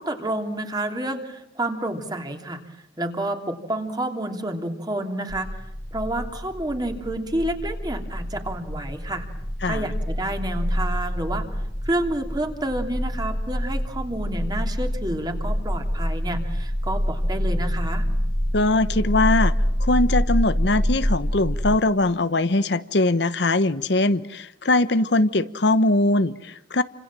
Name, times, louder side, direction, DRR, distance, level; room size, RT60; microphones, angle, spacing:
voice 1, 0.0-2.6 3.0-5.5 5.9-9.3 9.6-11.4 11.8-18.1, right 1 dB, 20° right, 5 dB, 3.2 m, -29 dB
sound 1, 5.3-21.8, equal, 20° left, 1.8 m, -26 dB
voice 2, 18.5-19.5 19.8-26.8, left 2 dB, 65° left, 13 dB, 1.1 m, -21 dB
29.5 x 26.5 x 7.6 m, 0.81 s
head